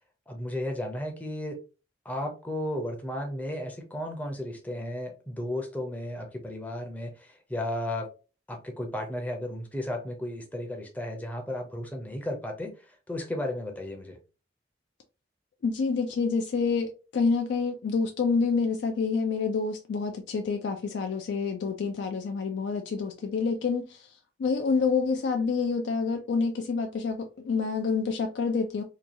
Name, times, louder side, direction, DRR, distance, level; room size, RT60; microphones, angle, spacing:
voice 1, 0.3-1.6 2.0-8.1 8.5-14.2, left 1 dB, 10° left, 0.5 m, -34 dB
voice 2, 15.6-28.8, left 4 dB, 75° left, 0.3 m, -28 dB
2.9 x 2.2 x 2.6 m
head